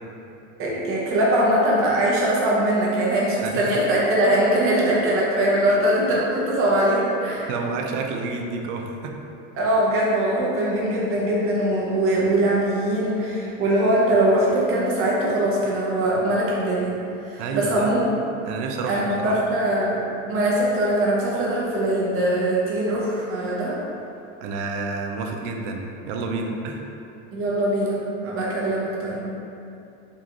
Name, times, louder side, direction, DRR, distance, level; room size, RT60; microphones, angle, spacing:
voice 1, 0.6-7.5 9.6-17.0 17.3-18.1 18.9-20.0 20.3-23.8 27.3-29.2, right 1 dB, 35° right, -5 dB, 0.8 m, -22 dB
voice 2, 3.4-3.7 4.8-4.9 5.7-5.8 7.5-9.1 17.4-18.0 18.5-19.4 24.4-26.9, right 4 dB, 70° right, 2 dB, 0.5 m, -29 dB
3.8 x 2.3 x 2.9 m, 2.7 s
supercardioid pair, 130°, 36 cm